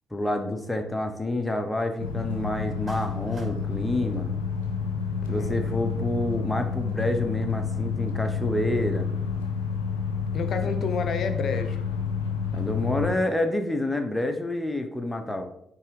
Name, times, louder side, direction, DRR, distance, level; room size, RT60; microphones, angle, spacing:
voice 1, 0.1-4.3 5.3-9.1 12.5-15.4, left 1 dB, 15° left, 6 dB, 1.1 m, -28 dB
sound 1, 2.0-13.1, left 5 dB, 80° left, 0.7 m, -29 dB
Clapping, 2.9-3.6, right 2 dB, 35° right, 2.7 m, -47 dB
voice 2, 5.2-5.8 10.3-11.8, left 5 dB, 50° left, 8 dB, 0.9 m, -30 dB
9.0 x 3.6 x 4.9 m, 0.76 s
figure-of-eight pair, 40°, 0 cm